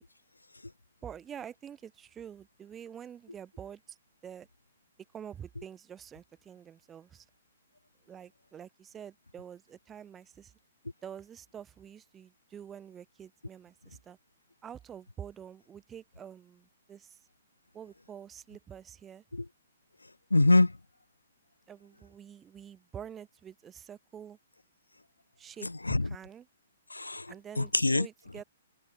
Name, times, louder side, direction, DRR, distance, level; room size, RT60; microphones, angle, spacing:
voice 1, 1.0-4.0 4.2-4.5 5.1-7.3 8.1-10.5 11.0-14.2 14.6-17.2 17.7-19.2 21.7-24.4 25.4-25.7 26.0-26.5 27.3-28.4, right 8 dB, 15° right, 3.4 m, -47 dB
voice 2, 20.3-20.7 25.6-26.1 26.9-28.1, left 2 dB, 80° left, 0.4 m, -25 dB
figure-of-eight pair, 120°, 0 cm